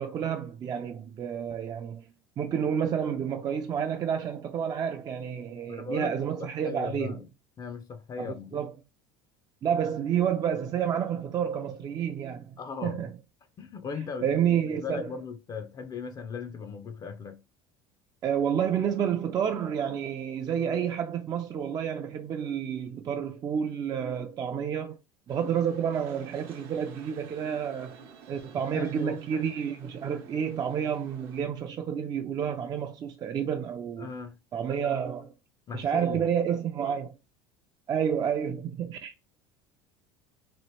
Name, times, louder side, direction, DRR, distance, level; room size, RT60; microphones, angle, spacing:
voice 1, 0.0-2.0 2.4-7.2 8.2-8.3 8.5-8.7 9.6-12.5 12.8-13.1 14.2-15.1 18.2-25.0 25.3-28.0 28.3-34.1 34.5-35.3 35.7-37.1 37.9-39.1, right 8 dB, 35° right, 0.3 m, -29 dB
voice 2, 5.7-7.3 7.6-8.5 12.6-13.0 13.6-17.4 28.7-29.4 34.0-34.4 35.7-36.3, left 5 dB, 30° left, 0.4 m, -38 dB
sound 1, 25.3-31.4, right 5 dB, 70° right, 0.8 m, -51 dB
3.0 x 2.4 x 3.0 m
supercardioid pair, 95°, 12 cm